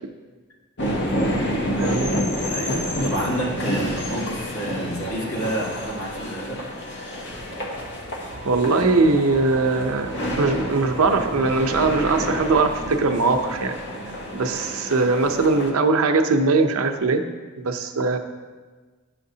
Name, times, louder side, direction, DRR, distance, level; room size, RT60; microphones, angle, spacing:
sound 1, 0.8-15.7, equal, 55° left, 0.9 m, -29 dB
voice 1, 1.8-2.2 8.4-13.7 14.3-17.2 17.6-18.2, right 3 dB, 85° right, 6 dB, 0.6 m, -21 dB
voice 2, 2.5-6.6 14.4-14.6, right 1 dB, 80° left, -6 dB, 2.0 m, -29 dB
sound 2, 7.3-14.5, right 1 dB, 10° left, 0.9 m, -45 dB
10.0 x 5.8 x 2.7 m, 1.4 s
head